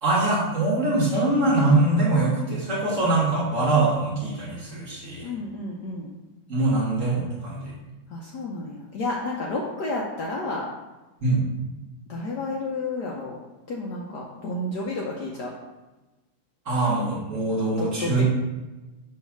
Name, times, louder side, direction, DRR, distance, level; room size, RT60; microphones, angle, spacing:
voice 1, 0.0-5.3 6.5-7.7 11.2-11.4 16.7-18.2, right 2 dB, 40° right, -6 dB, 1.7 m, -23 dB
voice 2, 5.2-6.2 8.1-10.7 12.1-13.4 13.7-15.5 17.8-18.2, left 2 dB, 65° left, -2 dB, 1.1 m, -31 dB
6.1 x 3.2 x 5.9 m, 1.1 s
omnidirectional pair, 2.4 m